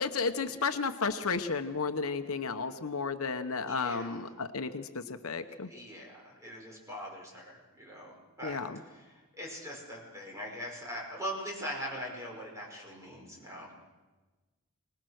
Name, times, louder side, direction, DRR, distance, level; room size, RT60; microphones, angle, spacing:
voice 1, 0.0-5.7 8.4-8.8, left 4 dB, 70° left, 8 dB, 1.0 m, -33 dB
voice 2, 3.6-4.2 5.7-8.6 8.9-13.7, equal, 15° right, -2 dB, 5.5 m, -41 dB
25.5 x 19.5 x 6.4 m, 1.2 s
head